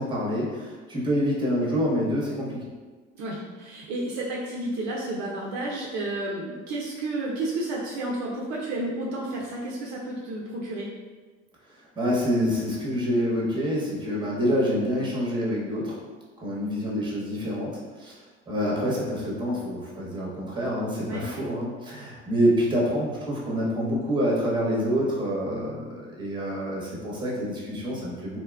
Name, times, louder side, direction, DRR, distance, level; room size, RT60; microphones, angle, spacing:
voice 1, 0.0-2.7 12.0-16.0 16.4-18.2 18.5-28.4, equal, 15° right, -4 dB, 0.9 m, -27 dB
voice 2, 3.2-10.9 21.1-21.3, right 2 dB, 55° right, -3 dB, 0.5 m, -31 dB
3.0 x 2.1 x 2.2 m, 1.4 s
hypercardioid pair, 80°, 33 cm